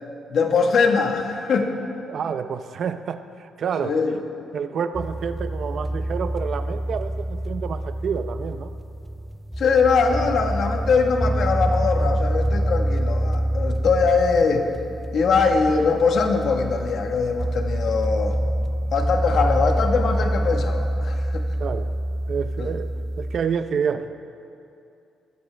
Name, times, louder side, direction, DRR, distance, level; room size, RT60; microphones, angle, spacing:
voice 1, 0.3-1.7 3.8-4.2 9.6-14.7 15.1-18.4 18.9-21.4 22.6-22.7, left 5 dB, 50° left, 4 dB, 1.3 m, -22 dB
voice 2, 2.1-4.0 4.5-8.7 21.6-21.9 22.3-24.1, right 6 dB, 45° right, 10 dB, 0.6 m, -28 dB
sound 1, 5.0-23.4, right 1 dB, ahead, 0.4 m, -26 dB
21.0 x 13.5 x 3.4 m, 2.5 s
cardioid pair, 165°, 0 cm